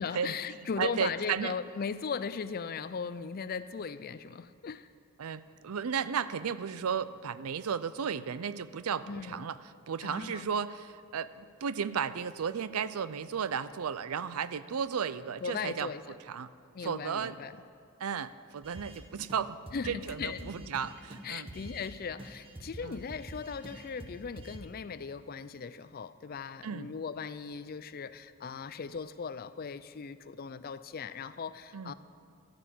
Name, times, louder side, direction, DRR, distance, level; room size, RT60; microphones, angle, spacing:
voice 1, 0.0-4.9 9.1-9.5 10.0-10.5 15.4-16.0 16.7-17.6 19.7-20.7 21.2-31.9, left 5 dB, 45° left, 14 dB, 0.4 m, -38 dB
voice 2, 0.8-1.5 5.2-9.6 9.9-15.9 16.3-16.5 16.8-17.4 18.0-19.6 19.9-21.5 22.8-23.0 26.6-26.9 31.7-31.9, right 7 dB, 85° right, 15 dB, 0.5 m, -34 dB
sound 1, 18.6-19.0 19.3-19.4 19.7-21.9 22.2-24.6, right 1 dB, 25° right, 1.1 m, -46 dB
12.5 x 9.0 x 8.6 m, 2.2 s
head